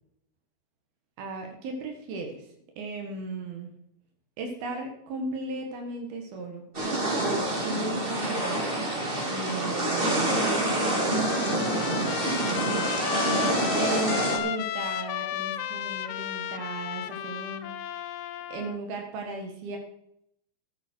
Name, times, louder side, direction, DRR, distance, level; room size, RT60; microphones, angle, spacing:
voice 1, 1.2-2.5 2.8-3.7 4.4-6.6 7.2-8.7 9.3-12.1 12.4-12.9 13.8-18.0 18.5-19.8, right 3 dB, 80° right, 3 dB, 3.6 m, -36 dB
sound 1, 6.7-14.4, right 1 dB, 20° right, 2.0 m, -27 dB
Trumpet, 10.6-18.8, left 12 dB, 80° left, 1.7 m, -34 dB
14.0 x 12.5 x 4.7 m, 0.75 s
omnidirectional pair, 4.3 m